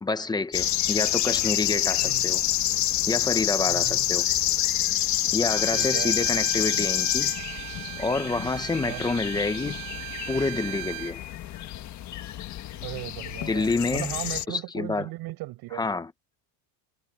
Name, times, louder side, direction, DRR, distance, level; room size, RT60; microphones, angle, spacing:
voice 1, 0.0-2.4 3.1-4.3 5.3-7.3 8.0-9.8 10.3-11.2 13.5-14.1 14.5-15.1 15.7-16.1, left 3 dB, 10° left, 0.7 m, -28 dB
sound 1, 0.5-14.4, left 13 dB, 35° left, 1.6 m, -27 dB
voice 2, 3.7-4.0 5.7-6.1 8.8-9.0 12.8-15.8, right 19 dB, 50° right, 6.9 m, -37 dB
Bowed string instrument, 5.4-11.2, right 21 dB, 85° right, 1.8 m, -37 dB
cardioid pair, 160°, 47 cm